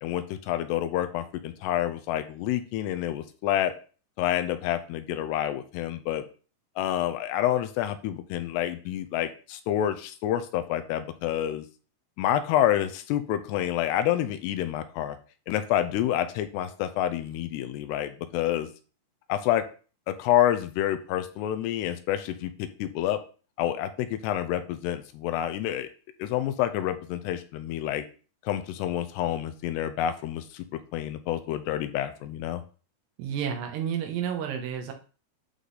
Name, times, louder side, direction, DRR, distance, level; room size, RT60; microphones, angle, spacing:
voice 1, 0.0-3.7 4.2-6.2 6.8-11.7 12.2-15.2 15.5-18.7 19.3-19.6 20.1-23.2 23.6-25.9 26.2-28.0 28.5-30.6 30.9-32.6, left 12 dB, 85° left, 9 dB, 2.7 m, -28 dB
voice 2, 33.2-34.9, right 8 dB, 75° right, 3 dB, 3.2 m, -30 dB
11.0 x 3.9 x 4.1 m, 0.37 s
omnidirectional pair, 4.9 m